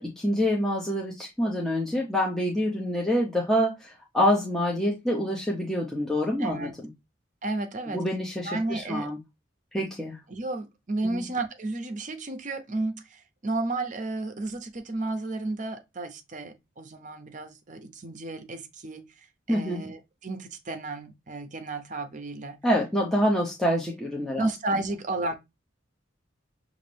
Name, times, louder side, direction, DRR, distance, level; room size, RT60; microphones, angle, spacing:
voice 1, 0.0-6.7 7.9-9.2 9.7-10.2 11.0-11.2 19.5-19.8 22.6-24.4, equal, ahead, 0.7 m, -26 dB
voice 2, 6.4-6.7 7.4-8.0 8.4-9.1 10.3-22.6 24.4-25.3, right 2 dB, 40° right, 0.6 m, -32 dB
6.3 x 2.5 x 3.3 m
head